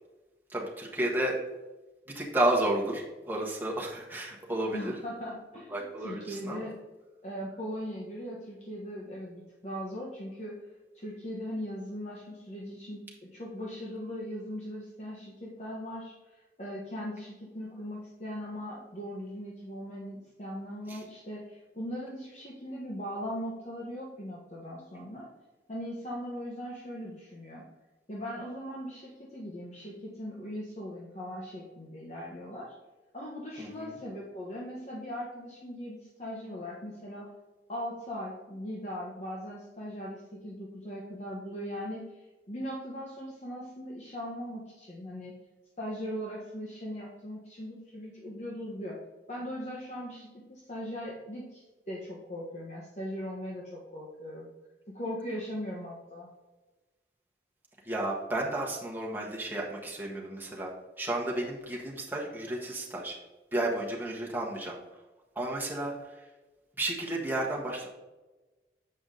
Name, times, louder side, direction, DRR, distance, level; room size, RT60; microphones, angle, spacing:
voice 1, 0.5-1.4 2.1-4.9 5.7-6.7 20.9-21.0 33.6-33.9 57.8-60.7 61.0-63.2 63.5-64.8 65.3-66.2 66.8-67.9, right 1 dB, 10° right, -3 dB, 1.4 m, -32 dB
voice 2, 4.7-6.7 7.2-10.6 10.9-25.3 25.7-27.7 28.1-32.7 33.1-37.3 37.7-45.3 45.8-49.0 49.3-54.5 54.9-56.3, equal, 40° left, -4 dB, 1.2 m, -39 dB
7.8 x 5.0 x 3.8 m, 1.1 s
head